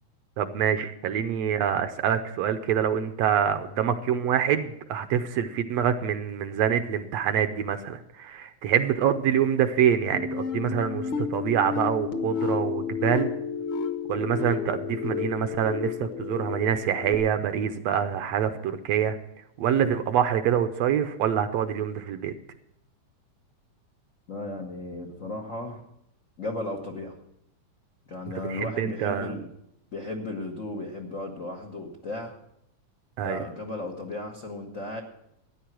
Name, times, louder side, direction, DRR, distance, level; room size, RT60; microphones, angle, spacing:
voice 1, 0.4-13.3 14.1-19.2 19.6-22.3 28.5-29.3 33.2-33.4, right 9 dB, 75° right, 9 dB, 1.7 m, -25 dB
sound 1, 10.1-17.2, left 6 dB, 55° left, 1.5 m, -31 dB
voice 2, 24.3-25.8 26.4-27.2 28.1-29.5 29.9-32.3 33.2-35.0, left 2 dB, 75° left, 1 dB, 0.7 m, -35 dB
13.5 x 9.8 x 6.1 m, 0.79 s
omnidirectional pair, 3.4 m